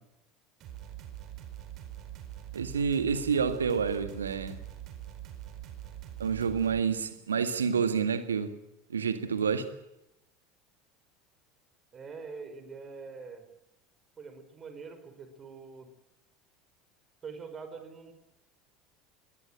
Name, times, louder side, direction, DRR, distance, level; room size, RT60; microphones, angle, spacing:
sound 1, 0.6-6.8, right 12 dB, 45° right, 4.9 m, -44 dB
voice 1, 2.5-4.6 6.2-8.6 8.9-9.7, right 6 dB, 75° right, 1.8 m, -28 dB
voice 2, 11.9-13.4 14.2-15.9 17.2-18.1, right 5 dB, 30° right, 5.0 m, -44 dB
21.5 x 21.5 x 8.9 m
figure-of-eight pair, 70°, 0 cm